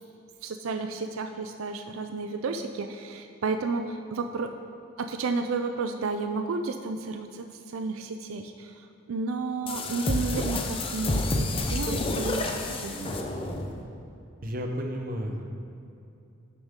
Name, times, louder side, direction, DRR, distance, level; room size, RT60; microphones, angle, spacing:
voice 1, 0.4-4.5 5.0-13.2, right 4 dB, 85° right, 7 dB, 0.4 m, -32 dB
sound 1, 9.7-13.8, left 2 dB, 25° left, 0.6 m, -29 dB
voice 2, 14.4-15.6, equal, 45° right, 3 dB, 0.8 m, -32 dB
10.5 x 7.0 x 3.7 m, 2.7 s
head